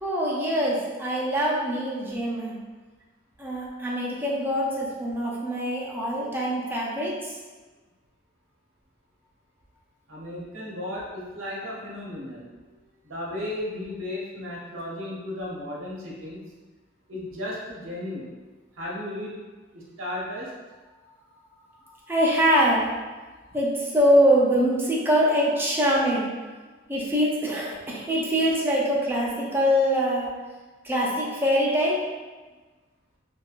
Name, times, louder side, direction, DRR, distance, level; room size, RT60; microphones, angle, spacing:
voice 1, 0.0-2.6 3.4-7.4 21.9-22.9 23.5-26.5 26.9-30.3 30.8-32.0, equal, 10° right, -4 dB, 0.5 m, -24 dB
voice 2, 10.1-12.5 13.0-16.4 17.1-18.3 18.7-19.4 19.7-20.5, left 1 dB, 85° right, -5 dB, 0.8 m, -34 dB
3.1 x 2.6 x 2.4 m, 1.3 s
head